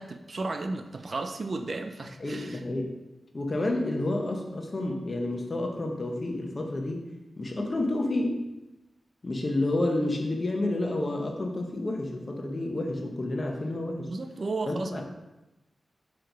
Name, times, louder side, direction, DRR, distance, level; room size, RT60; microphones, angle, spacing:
voice 1, 0.0-2.6 14.1-15.0, right 3 dB, 45° right, 7 dB, 0.4 m, -34 dB
voice 2, 2.2-2.9 3.3-7.1 7.4-8.4 9.2-14.1 14.7-15.0, left 2 dB, 35° left, 1 dB, 0.9 m, -30 dB
6.0 x 3.2 x 5.3 m, 0.99 s
wide cardioid pair, 145°, 0 cm